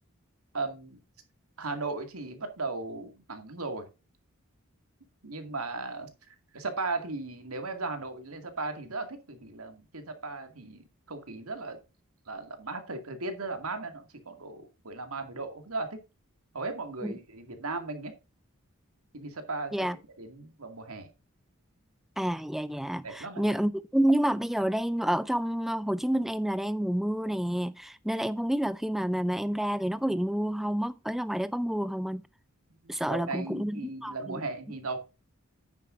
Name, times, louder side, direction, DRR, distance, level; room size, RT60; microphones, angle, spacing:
voice 1, 0.5-1.0 1.6-3.9 5.2-6.1 6.5-11.8 12.3-16.0 16.5-18.1 19.1-21.1 23.0-23.5 32.8-35.1, right 3 dB, 85° right, 2.2 m, -37 dB
voice 2, 22.2-32.2 32.9-34.4, right 1 dB, ahead, 0.3 m, -29 dB
9.7 x 9.3 x 2.6 m
head